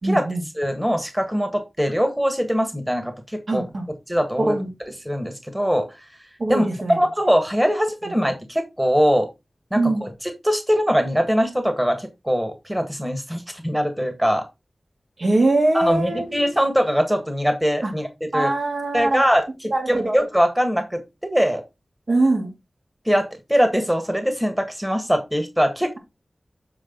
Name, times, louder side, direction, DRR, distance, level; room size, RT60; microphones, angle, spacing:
voice 1, 0.0-0.4 3.5-3.9 4.4-4.7 6.4-7.0 9.7-10.0 15.2-16.3 17.8-17.9 18.3-19.2 19.7-20.2 22.1-22.5, right 2 dB, 65° right, 2.6 m, -22 dB
voice 2, 0.6-3.6 4.1-4.6 5.0-5.9 6.5-6.6 6.9-9.3 9.7-10.1 10.4-14.4 15.7-18.5 18.9-21.6 23.0-26.0, equal, 10° right, 1.6 m, -22 dB
7.6 x 4.7 x 3.8 m
wide cardioid pair, 60°, 0 cm